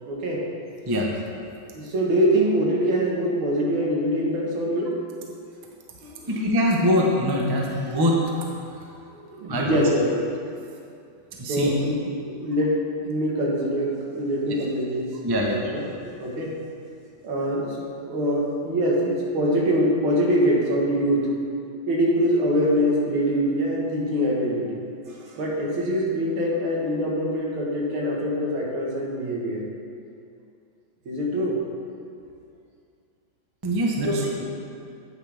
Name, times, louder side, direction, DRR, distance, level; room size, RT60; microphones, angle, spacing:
voice 1, 0.1-0.4 1.7-4.9 6.0-6.5 8.7-8.8 9.1-10.2 11.5-16.5 17.2-17.8 18.0-21.3 21.9-29.6 31.1-31.6 34.1-34.5, equal, 90° right, -3 dB, 2.3 m, -24 dB
voice 2, 6.3-8.2 8.5-9.0 9.5-9.8 11.4-11.7 15.2-15.7 33.6-34.4, equal, 30° right, -1 dB, 0.4 m, -23 dB
9.0 x 8.9 x 3.4 m, 2.5 s
omnidirectional pair, 2.2 m